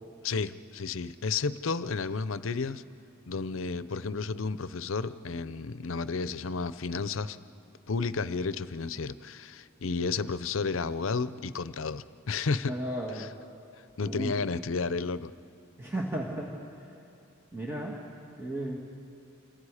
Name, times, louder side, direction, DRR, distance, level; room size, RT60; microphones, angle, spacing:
voice 1, 0.2-2.8 3.3-7.4 7.9-12.7 13.1-13.3 14.0-15.3, left 4 dB, 80° left, 15 dB, 0.7 m, -32 dB
voice 2, 12.7-13.3 14.0-14.3 15.8-16.5 17.5-18.0 18.4-18.8, right 1 dB, 15° right, -3 dB, 2.1 m, -34 dB
29.5 x 27.0 x 5.0 m, 2.5 s
head